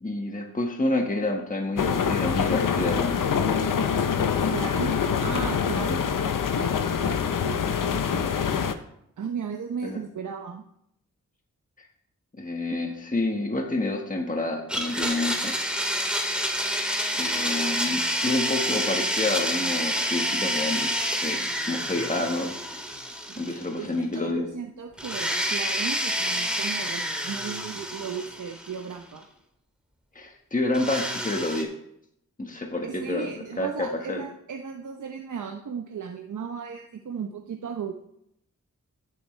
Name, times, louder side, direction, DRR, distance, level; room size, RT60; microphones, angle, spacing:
voice 1, 0.0-3.2 5.9-6.0 9.8-10.0 12.4-15.5 17.1-22.6 23.4-24.5 30.1-31.7 32.4-34.2, left 2 dB, 25° left, 1 dB, 1.4 m, -28 dB
sound 1, 1.8-8.7, left 7 dB, 85° left, 0.7 m, -25 dB
voice 2, 4.5-6.1 6.5-8.5 9.2-10.6 23.3-29.3 32.9-37.9, right 6 dB, 70° right, 4 dB, 0.8 m, -36 dB
Domestic sounds home sounds, 14.7-23.9 24.1-24.2 25.0-28.9 30.7-31.6, equal, 5° right, 2.0 m, -28 dB
15.5 x 7.6 x 3.3 m, 0.76 s
wide cardioid pair, 75°, 31 cm